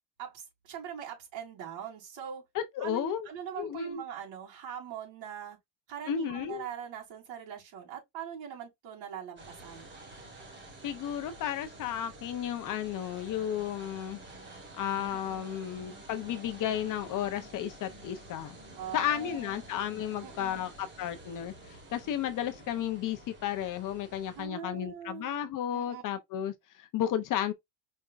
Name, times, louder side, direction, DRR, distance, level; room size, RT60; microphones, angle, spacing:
voice 1, 0.2-2.5 2.8-5.6 5.9-9.9 15.1-15.6 18.8-19.7 20.2-20.7 24.3-25.4 25.7-26.0, right 8 dB, 70° right, 3.5 m, -42 dB
voice 2, 2.5-3.3 3.6-4.0 6.1-6.6 10.8-14.2 14.8-18.6 18.9-27.5, left 10 dB, 45° left, 0.7 m, -33 dB
sound 1, 9.4-24.5, right 2 dB, 25° right, 1.6 m, -50 dB
5.3 x 3.5 x 2.5 m
cardioid pair, 160°, 47 cm